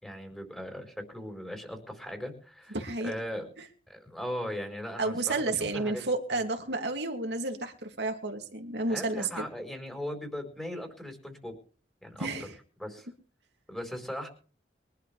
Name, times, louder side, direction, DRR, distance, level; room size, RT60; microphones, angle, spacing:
voice 1, 0.0-2.8 3.0-3.5 3.9-6.0 6.3-6.4 8.8-11.5 12.0-12.3 12.8-13.1 13.7-14.3, equal, 5° left, 4 dB, 4.3 m, -38 dB
voice 2, 2.7-3.1 3.6-3.7 5.0-9.4 12.2-12.5, right 2 dB, 80° right, 4 dB, 2.6 m, -31 dB
23.5 x 11.5 x 3.4 m, 0.40 s
head